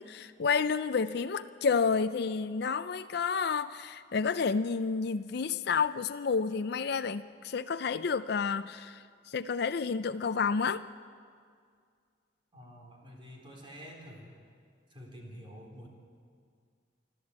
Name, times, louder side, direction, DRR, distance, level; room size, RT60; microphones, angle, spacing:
voice 1, 0.0-10.8, left 5 dB, 60° left, 11 dB, 0.4 m, -30 dB
voice 2, 12.5-14.3 14.9-15.9, equal, 25° right, 0 dB, 3.7 m, -48 dB
25.0 x 13.0 x 8.3 m, 2.1 s
head